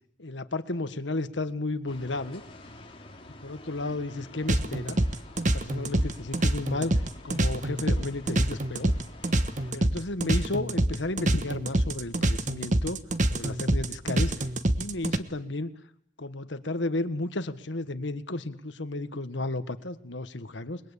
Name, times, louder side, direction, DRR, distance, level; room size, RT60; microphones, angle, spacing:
voice 1, 0.2-2.4 3.4-5.0 5.5-6.9 7.2-8.9 9.7-13.0 13.3-14.5 14.8-15.7 16.2-20.8, left 2 dB, 75° left, 11 dB, 1.6 m, -33 dB
sound 1, 1.9-9.7, left 2 dB, 30° left, 3.2 m, -48 dB
sound 2, 4.5-15.2, right 1 dB, 45° right, 1.3 m, -26 dB
29.5 x 21.5 x 8.5 m, 0.70 s
head